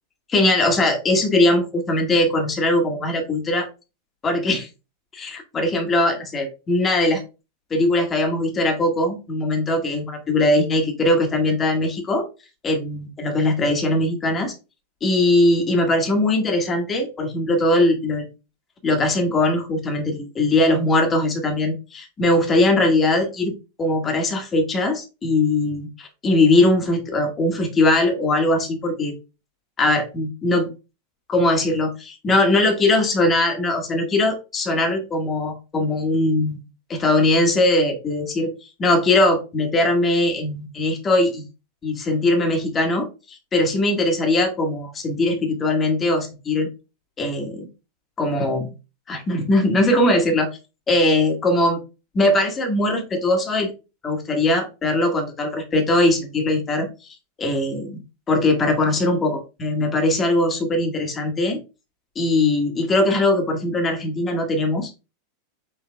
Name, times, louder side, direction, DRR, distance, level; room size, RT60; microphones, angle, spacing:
voice 1, 0.3-3.7 4.2-4.7 5.1-7.2 7.7-12.3 12.6-14.5 15.0-18.3 18.8-23.5 23.8-29.1 29.8-30.7 31.3-36.6 36.9-41.4 41.8-46.7 47.2-47.7 48.2-48.7 49.1-50.5 50.9-51.8 52.1-53.7 54.0-56.9 57.4-58.0 58.3-61.6 62.1-64.9, left 2 dB, 25° left, 4 dB, 1.5 m, -20 dB
6.0 x 3.8 x 2.2 m, 0.29 s
figure-of-eight pair, 90°, 0 cm